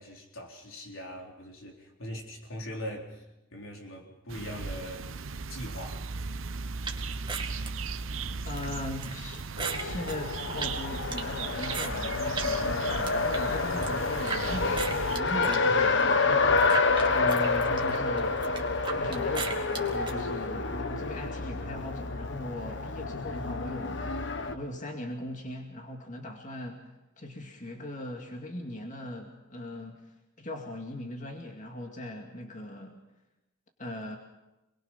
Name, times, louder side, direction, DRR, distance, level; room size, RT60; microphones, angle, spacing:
voice 1, 0.0-3.2 3.5-6.1, equal, 80° left, 0 dB, 4.0 m, -41 dB
sound 1, 4.3-15.2, right 4 dB, 75° right, 0.9 m, -37 dB
sound 2, 6.8-12.5 12.9-14.4 14.8-20.1, right 5 dB, 25° right, 2.2 m, -38 dB
voice 2, 8.5-9.4 9.8-18.4 18.9-24.1 24.5-26.9 27.2-30.0 30.4-33.0 33.8-34.2, left 1 dB, 40° left, 2 dB, 2.3 m, -39 dB
Race car auto racing, 9.6-24.5, left 3 dB, 65° left, 1.3 m, -28 dB
28.0 x 21.5 x 5.8 m, 0.98 s
head